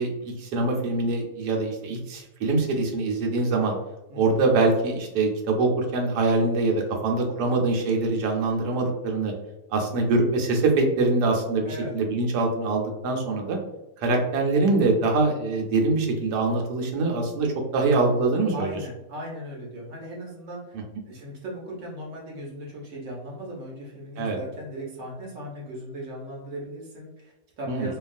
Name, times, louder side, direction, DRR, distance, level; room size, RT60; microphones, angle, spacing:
voice 1, 0.0-3.7 4.1-9.3 9.7-13.6 14.0-18.7 24.2-24.4 27.7-27.9, right 3 dB, 80° right, 1 dB, 1.2 m, -24 dB
voice 2, 11.6-11.9 18.5-20.8 21.0-28.0, equal, 55° right, -3 dB, 1.0 m, -37 dB
2.7 x 2.3 x 2.5 m, 0.93 s
omnidirectional pair, 1.8 m